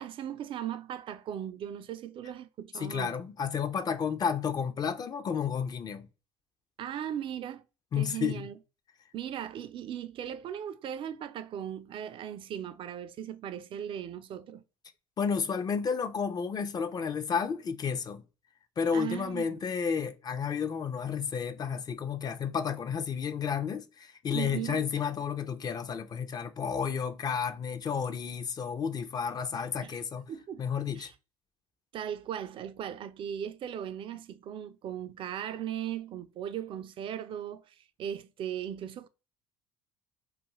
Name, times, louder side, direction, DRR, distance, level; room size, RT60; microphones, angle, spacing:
voice 1, 0.0-3.1 6.8-7.6 8.0-8.5 9.1-14.6 18.9-19.6 24.3-24.8 29.8-30.0 30.3-30.6 31.0-31.1 31.9-39.1, right 10 dB, 45° right, 0.3 m, -38 dB
voice 2, 2.8-6.1 7.9-8.5 15.2-18.2 18.8-30.3 30.6-31.1, left 6 dB, 30° left, 0.4 m, -31 dB
2.4 x 2.3 x 3.0 m
hypercardioid pair, 75°, 13 cm